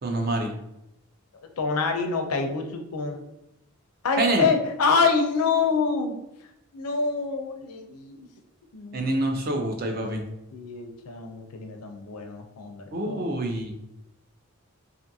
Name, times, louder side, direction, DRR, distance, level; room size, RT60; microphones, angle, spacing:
voice 1, 0.0-0.5 4.2-4.5 8.9-10.2 12.9-13.7, right 1 dB, 45° right, 3 dB, 0.4 m, -26 dB
voice 2, 1.6-3.2 4.0-6.2 6.7-8.2 8.7-9.2 10.5-13.3, left 4 dB, 85° left, 5 dB, 0.5 m, -26 dB
2.6 x 2.4 x 2.6 m, 0.84 s
head